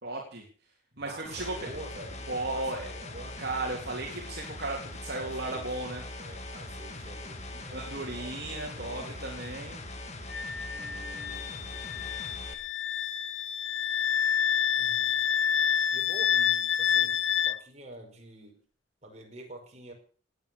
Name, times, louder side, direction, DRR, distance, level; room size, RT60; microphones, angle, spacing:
voice 1, 0.0-0.4 1.0-1.5 2.3-2.9 3.4-4.8 5.0-6.0 7.7-9.8, right 2 dB, 55° right, -1 dB, 3.5 m, -35 dB
voice 2, 0.9-2.2 2.5-3.4 5.1-5.8 6.2-9.2 10.6-12.2 14.8-15.2 15.9-18.6 19.0-19.9, right 1 dB, 35° right, 1 dB, 5.3 m, -47 dB
sound 1, 1.2-12.5, left 2 dB, 35° left, 2.3 m, -41 dB
Wind instrument woodwind instrument, 10.3-17.6, left 8 dB, 80° left, 1.1 m, -28 dB
19.0 x 9.0 x 7.0 m, 0.42 s
head